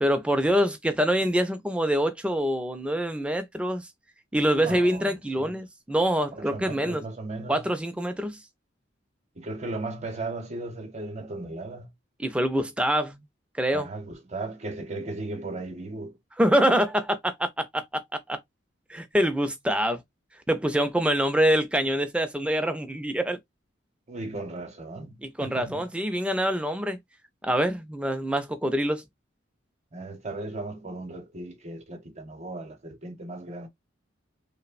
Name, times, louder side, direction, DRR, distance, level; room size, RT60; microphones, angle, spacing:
voice 1, 0.0-3.9 4.3-7.0 7.5-8.4 12.2-13.2 13.6-13.9 16.4-18.4 18.9-20.0 20.5-23.4 25.2-27.0 27.4-29.0, equal, 5° right, 0.3 m, -25 dB
voice 2, 4.6-5.6 6.3-7.7 9.3-11.9 13.7-16.2 24.1-25.9 29.9-33.7, right 2 dB, 35° right, 0.7 m, -36 dB
3.0 x 2.0 x 2.4 m
head